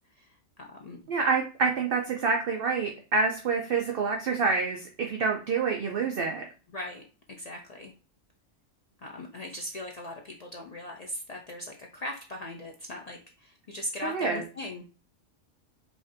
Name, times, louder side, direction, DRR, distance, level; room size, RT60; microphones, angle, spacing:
voice 1, 0.6-1.0 6.7-7.0 7.3-7.9 9.0-14.8, left 1 dB, 70° left, 1 dB, 0.3 m, -39 dB
voice 2, 1.1-6.4 14.0-14.4, right 4 dB, 60° right, 2 dB, 0.7 m, -27 dB
4.9 x 2.5 x 2.6 m, 0.35 s
omnidirectional pair, 1.3 m